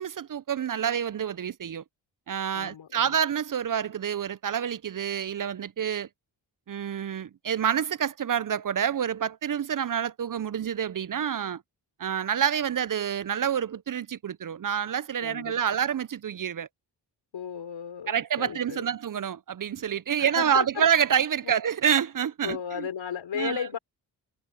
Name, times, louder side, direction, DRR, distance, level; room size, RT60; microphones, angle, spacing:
voice 1, 0.0-1.8 2.3-6.1 6.7-11.6 12.0-16.7 18.1-22.9 23.3-23.7, right 8 dB, 45° right, 0.7 m, -28 dB
voice 2, 2.5-3.2 15.2-15.8 17.3-18.9 20.2-20.8 21.4-21.6 22.4-23.8, left 8 dB, 75° left, 4.0 m, -35 dB
supercardioid pair, 45°, 46 cm